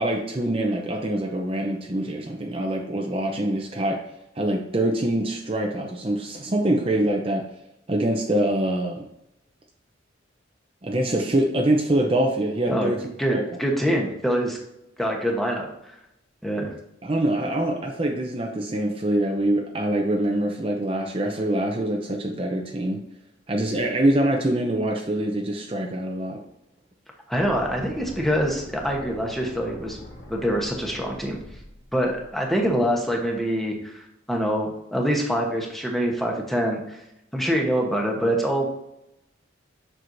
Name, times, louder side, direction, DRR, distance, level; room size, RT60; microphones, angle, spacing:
voice 1, 0.0-4.0 4.3-7.5 7.9-9.1 10.8-13.0 13.3-13.4 17.0-23.0 23.5-26.4, right 1 dB, 30° right, 1 dB, 0.6 m, -24 dB
voice 2, 13.2-14.6 15.0-15.7 16.4-16.7 27.3-30.0 30.3-31.4 31.9-37.0 37.3-38.7, equal, ahead, 0 dB, 1.0 m, -25 dB
sound 1, 27.4-33.4, left 1 dB, 55° left, 1.2 m, -44 dB
7.6 x 6.1 x 2.7 m, 0.83 s
head